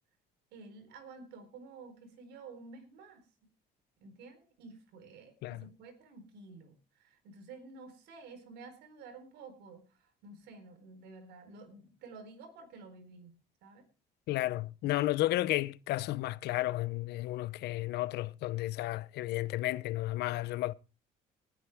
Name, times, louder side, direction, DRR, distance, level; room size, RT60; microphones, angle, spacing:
voice 1, 0.5-3.3 4.0-13.8, right 4 dB, 85° right, 4.4 m, -51 dB
voice 2, 14.3-20.7, left 16 dB, 80° left, 0.7 m, -32 dB
19.5 x 9.2 x 3.5 m
cardioid pair, 110°, 17 cm